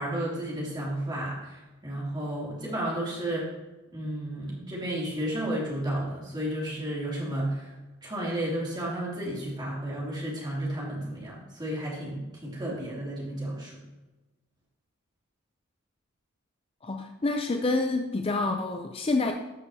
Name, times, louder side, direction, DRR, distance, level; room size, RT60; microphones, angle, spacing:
voice 1, 0.0-3.5 3.9-7.7 8.0-13.8, right 1 dB, 20° right, -6 dB, 2.8 m, -32 dB
voice 2, 16.8-19.3, left 3 dB, 30° left, 4 dB, 0.5 m, -27 dB
12.5 x 6.5 x 2.8 m, 1.1 s
head